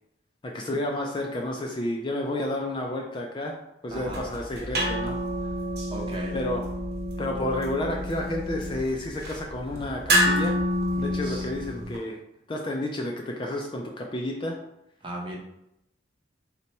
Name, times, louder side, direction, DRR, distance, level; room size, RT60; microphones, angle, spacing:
voice 1, 0.4-3.6 3.8-5.2 6.3-6.6 7.2-10.6 11.0-12.2 12.5-14.6, left 1 dB, 25° left, 0 dB, 0.3 m, -30 dB
voice 2, 3.9-4.2 5.9-6.3 11.2-11.5 15.0-15.4, right 1 dB, 25° right, -2 dB, 0.7 m, -36 dB
sound 1, 3.9-12.0, equal, 55° right, 0.9 m, -29 dB
4.1 x 2.2 x 4.1 m, 0.84 s
head